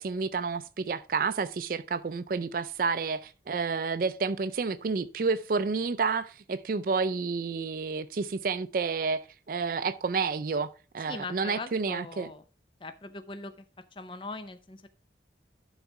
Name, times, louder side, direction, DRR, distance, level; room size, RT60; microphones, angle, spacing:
voice 1, 0.0-9.2 9.5-10.7 10.9-12.3, right 4 dB, 50° right, 0.4 m, -30 dB
voice 2, 11.1-12.4 12.8-13.7 13.9-14.9, left 3 dB, 30° left, 0.6 m, -41 dB
11.5 x 4.1 x 4.6 m
head